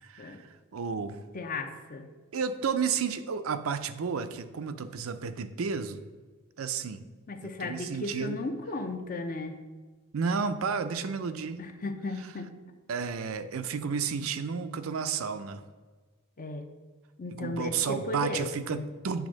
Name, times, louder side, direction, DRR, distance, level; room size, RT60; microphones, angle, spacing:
voice 1, 0.0-0.5 0.7-1.2 2.3-6.0 6.6-7.1 7.4-8.4 10.1-11.6 12.9-15.6 17.3-19.3, right 6 dB, 80° right, 10 dB, 0.5 m, -32 dB
voice 2, 1.3-2.1 7.3-9.6 11.6-12.6 16.4-16.7 17.2-18.9, left 2 dB, 40° left, 6 dB, 0.7 m, -35 dB
8.2 x 3.5 x 6.3 m, 1.4 s
head